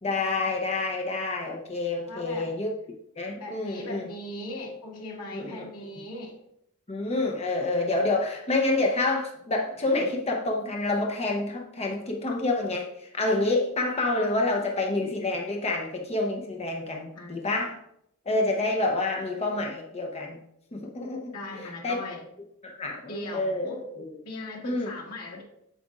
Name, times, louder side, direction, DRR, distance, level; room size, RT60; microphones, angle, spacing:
voice 1, 0.0-2.7 3.2-4.1 5.3-5.7 6.9-17.8 18.3-20.4 20.7-22.0 22.6-24.1 24.6-24.9, left 2 dB, 30° left, 0.7 m, -28 dB
voice 2, 2.1-2.5 3.4-6.4 17.1-17.4 21.3-22.3 23.0-23.9 24.2-25.4, left 1 dB, 85° left, 1.9 m, -39 dB
7.9 x 7.4 x 2.4 m
head